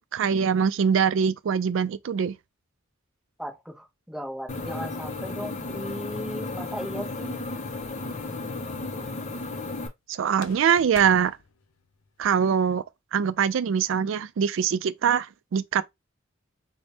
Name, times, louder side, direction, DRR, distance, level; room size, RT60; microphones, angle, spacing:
voice 1, 0.1-2.4 10.1-11.4 12.2-12.8 13.1-15.8, right 7 dB, 70° right, 0.3 m, -23 dB
voice 2, 3.4-7.4, equal, ahead, 0.7 m, -36 dB
sound 1, 4.5-9.9, left 3 dB, 35° left, 0.5 m, -34 dB
sound 2, 10.3-12.3, left 6 dB, 85° left, 0.5 m, -47 dB
3.3 x 2.1 x 4.0 m
head